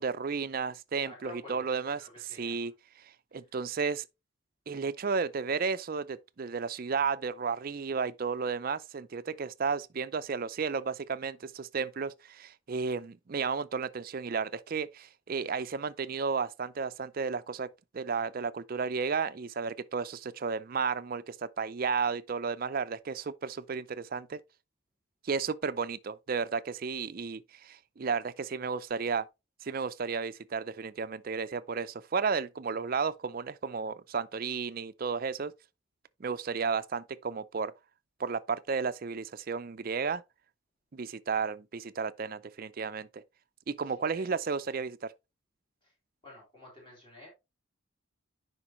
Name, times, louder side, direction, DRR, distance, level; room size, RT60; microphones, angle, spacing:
voice 1, 0.0-2.7 3.0-4.1 4.7-17.7 17.9-24.4 25.2-29.3 29.6-35.5 36.2-37.7 38.2-40.2 40.9-43.2 43.7-45.1, right 5 dB, 45° right, 0.4 m, -33 dB
voice 2, 1.0-2.7 43.9-44.3 45.8-45.9 46.2-47.3, left 2 dB, 25° left, 3.5 m, -51 dB
9.8 x 5.1 x 3.0 m
head